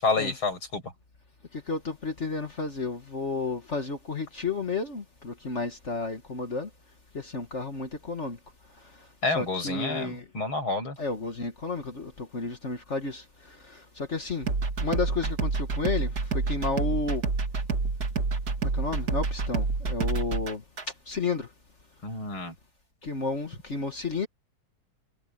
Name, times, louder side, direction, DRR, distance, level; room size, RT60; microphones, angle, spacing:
voice 1, 0.0-0.9 9.2-11.0 22.0-22.5, left 3 dB, 80° left, 7.4 m, -29 dB
voice 2, 1.7-6.7 7.1-8.4 9.3-10.2 11.0-14.5 14.8-17.2 18.7-20.6 21.1-21.5 23.0-24.3, left 4 dB, 35° left, 1.8 m, -32 dB
sound 1, 14.4-20.8, right 4 dB, 50° right, 2.5 m, -28 dB
omnidirectional pair, 2.2 m